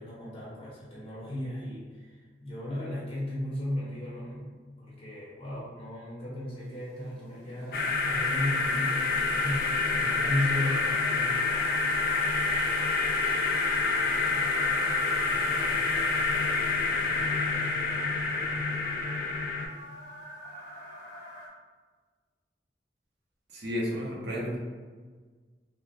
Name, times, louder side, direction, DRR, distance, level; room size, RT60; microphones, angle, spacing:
voice 1, 0.0-4.5 4.8-11.4, left 1 dB, 30° left, -7 dB, 1.0 m, -35 dB
sound 1, 6.6-21.5, right 1 dB, 70° left, 0.9 m, -47 dB
sound 2, 7.7-19.7, left 3 dB, 50° left, 0.3 m, -27 dB
voice 2, 23.5-24.6, equal, 75° right, -4 dB, 0.7 m, -32 dB
3.4 x 2.1 x 2.6 m, 1.5 s
head